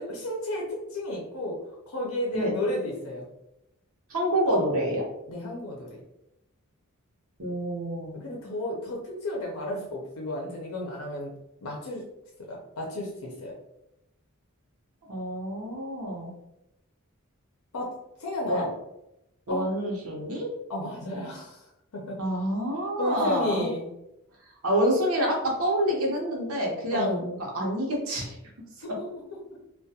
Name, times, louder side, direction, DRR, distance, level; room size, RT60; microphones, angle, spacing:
voice 1, 0.0-1.6 1.9-3.3 5.3-6.0 8.1-11.3 11.6-12.0 12.4-13.5 17.7-18.7 19.5-19.6 20.7-21.6 21.9-22.2 23.0-23.9 26.9-27.2 29.0-29.1, left 1 dB, 80° left, -2 dB, 0.5 m, -32 dB
voice 2, 4.1-5.0 7.4-8.2 15.1-16.3 18.5-18.7 19.5-20.5 22.2-23.7 24.6-28.4, equal, 85° right, -1 dB, 0.7 m, -27 dB
2.3 x 2.2 x 2.7 m, 0.86 s
head